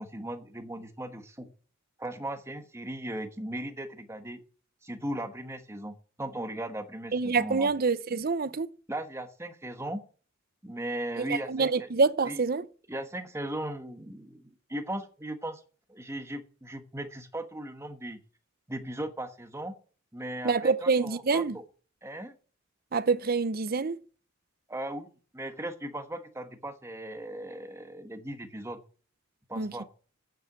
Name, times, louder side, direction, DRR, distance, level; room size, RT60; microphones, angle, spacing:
voice 1, 0.0-1.5 2.0-4.4 4.8-7.7 8.9-10.0 10.6-11.9 12.2-12.4 12.9-15.6 15.9-18.2 18.7-19.8 20.1-21.6 22.0-22.4 24.7-25.1 25.3-28.8 29.5-29.9, right 1 dB, 15° right, 1.2 m, -37 dB
voice 2, 7.1-8.7 11.5-12.7 20.4-21.6 22.9-24.0 29.6-29.7, right 4 dB, 45° right, 0.6 m, -26 dB
9.0 x 7.6 x 8.0 m
head